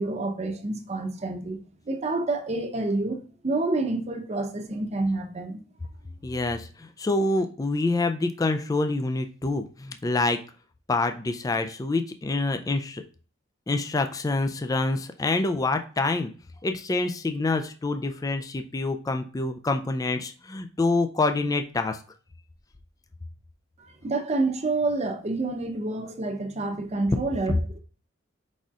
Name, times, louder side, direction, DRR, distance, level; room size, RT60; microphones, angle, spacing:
voice 1, 0.0-1.6 1.9-5.6 24.0-27.8, right 2 dB, 35° right, 0.7 m, -28 dB
voice 2, 6.2-6.7 7.0-10.4 10.9-13.0 13.7-16.3 16.6-22.0, left 2 dB, 20° left, 0.3 m, -26 dB
4.9 x 4.1 x 2.4 m
head